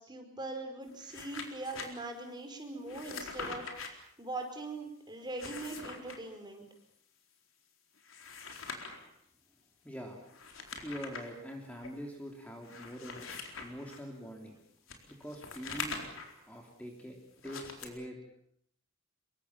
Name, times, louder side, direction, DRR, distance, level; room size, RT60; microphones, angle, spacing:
voice 1, 0.0-3.9 4.2-6.6, right 2 dB, 20° right, 4 dB, 4.8 m, -41 dB
sound 1, 0.9-1.9 2.9-3.9 5.2-6.2 8.0-9.1 10.3-11.3 11.8-11.9 12.6-14.0 14.9-16.4 17.4-17.9, left 4 dB, 80° left, 4.2 m, -43 dB
voice 2, 9.8-10.2 10.8-13.3 13.6-14.6 15.1-16.0 16.5-17.2 17.4-18.4, equal, 5° left, 1 dB, 3.1 m, -44 dB
26.5 x 23.0 x 7.3 m, 0.68 s
head